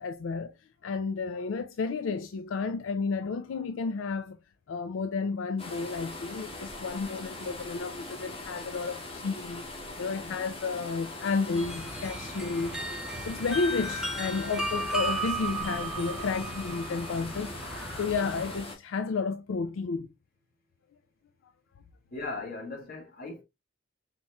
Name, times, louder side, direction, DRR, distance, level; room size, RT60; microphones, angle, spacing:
voice 1, 0.0-4.4 4.7-12.8 13.2-20.1 21.4-21.5, left 4 dB, 85° left, 0.4 m, -32 dB
sound 1, 5.6-18.8, left 2 dB, 30° left, 1.6 m, -41 dB
sound 2, 11.5-18.6, right 2 dB, 5° right, 0.8 m, -35 dB
voice 2, 22.1-23.4, left 3 dB, 50° left, 1.8 m, -38 dB
4.4 x 4.2 x 2.2 m
head